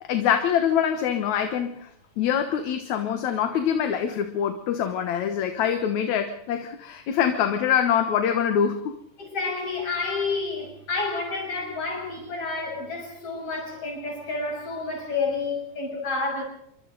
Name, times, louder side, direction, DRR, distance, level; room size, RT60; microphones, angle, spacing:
voice 1, 0.0-1.9 2.2-9.0, left 8 dB, 75° left, 2.6 m, -24 dB
voice 2, 9.2-16.4, left 3 dB, 55° left, 7.6 m, -29 dB
27.5 x 24.0 x 4.0 m
omnidirectional pair, 3.3 m